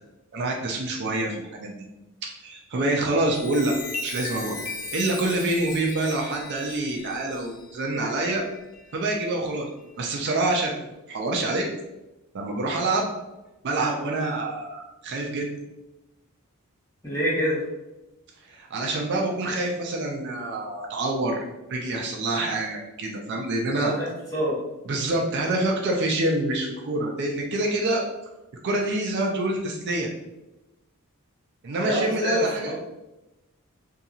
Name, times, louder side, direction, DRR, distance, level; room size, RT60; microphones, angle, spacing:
voice 1, 0.3-1.7 2.2-3.7 4.0-4.6 4.9-8.4 8.9-9.7 10.0-11.7 12.3-13.1 13.6-15.5 18.5-21.4 21.7-23.9 24.9-28.0 28.6-30.1 31.6-32.7, right 2 dB, 50° right, 0 dB, 0.4 m, -26 dB
Chime, 3.1-9.1 9.6-9.9, left 3 dB, 80° left, 0.6 m, -38 dB
voice 2, 17.0-17.6 23.8-24.5 31.8-32.7, equal, 15° left, -8 dB, 1.1 m, -27 dB
2.7 x 2.7 x 2.4 m, 1.0 s
head